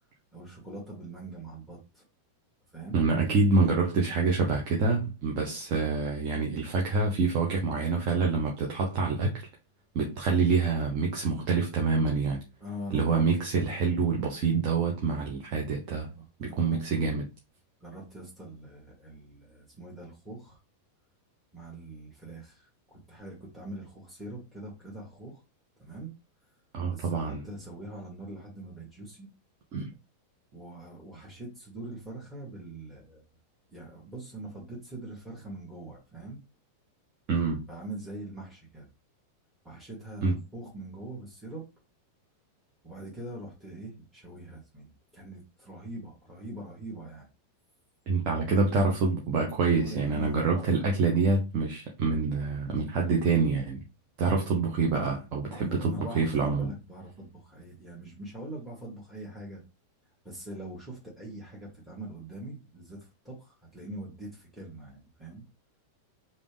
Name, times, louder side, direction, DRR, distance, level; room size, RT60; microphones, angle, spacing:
voice 1, 0.3-2.0 2.7-3.0 12.6-13.3 16.1-16.8 17.8-20.6 21.5-25.4 25.8-26.1 26.9-29.3 30.5-33.2 33.7-36.4 37.7-38.9 39.6-41.6 42.8-47.3 49.8-50.7 55.4-59.6 60.2-65.4, right 1 dB, 5° right, 1.9 m, -43 dB
voice 2, 2.9-9.3 9.9-12.4 12.9-16.1 16.4-17.2 26.7-27.4 29.7-29.9 37.3-37.6 40.2-40.4 48.1-53.8 54.2-56.7, right 4 dB, 40° right, 1.0 m, -26 dB
5.1 x 2.9 x 3.5 m
figure-of-eight pair, 90°, 0 cm